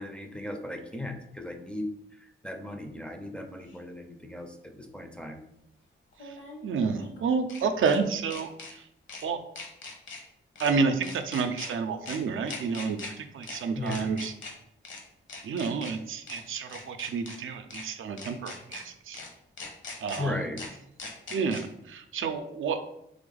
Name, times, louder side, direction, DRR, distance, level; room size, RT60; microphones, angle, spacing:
voice 1, 0.0-5.4 13.8-14.1 20.2-20.6, left 1 dB, 5° left, 3 dB, 0.4 m, -37 dB
sound 1, 3.7-3.8 6.1-8.0 8.3-8.7 9.1-9.2 9.6-10.2 10.6-10.7 11.0-11.7 12.1-12.2 12.5-13.1 13.4-13.6 13.9-14.5 14.8-15.0 15.3-15.9 16.3-16.4 16.7-17.4 17.7-17.8 18.2-18.8 19.1-19.3 19.6-20.2 20.6-20.7 21.0-21.6, left 3 dB, 65° left, 1.1 m, -41 dB
voice 2, 6.6-8.5 9.2-9.4 10.6-13.0 13.3-14.3 15.4-19.2 20.0-20.4 21.3-22.9, right 5 dB, 75° right, 7 dB, 0.5 m, -29 dB
3.6 x 3.4 x 3.9 m, 0.78 s
wide cardioid pair, 135°, 21 cm